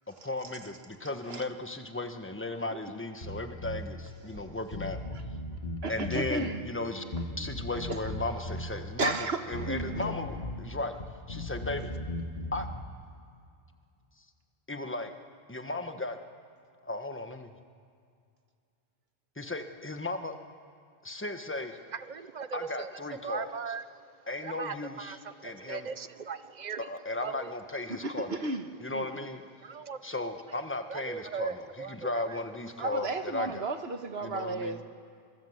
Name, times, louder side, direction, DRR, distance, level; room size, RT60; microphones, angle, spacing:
voice 1, 0.1-5.0 5.9-7.0 7.4-11.0 11.3-11.9 12.5-12.7 14.7-15.1 15.5-16.2 16.8-17.5 19.4-20.3 21.0-21.8 22.5-23.5 24.3-25.9 26.8-28.4 28.8-29.4 30.0-33.7 34.2-34.8, left 2 dB, 10° left, 7 dB, 1.2 m, -36 dB
Bass guitar, 3.2-3.9 4.4-4.5 4.7-6.3 7.1-8.7 9.5-10.6 10.9-12.8, left 1 dB, 45° left, 2.0 m, -37 dB
voice 2, 5.8-7.4 7.9-8.0 9.0-10.1 27.9-28.6 28.9-29.3 32.8-34.8, right 3 dB, 70° right, 7 dB, 1.6 m, -34 dB
voice 3, 21.9-22.9 23.2-23.8 24.4-26.9 27.2-27.5 29.6-30.0 30.9-32.4, right 6 dB, 45° right, 13 dB, 0.8 m, -39 dB
26.0 x 19.5 x 8.0 m, 2.3 s
omnidirectional pair, 1.1 m